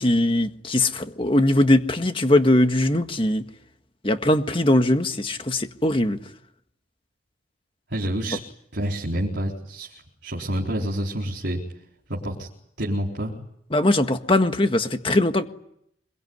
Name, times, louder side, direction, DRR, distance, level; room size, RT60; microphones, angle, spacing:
voice 1, 0.0-3.5 4.0-6.2 13.7-15.4, left 1 dB, 30° left, 1.7 m, -20 dB
voice 2, 7.9-8.4 8.7-11.6 12.1-12.5 12.8-13.3, right 1 dB, 65° right, 4.3 m, -28 dB
26.0 x 23.0 x 9.6 m
head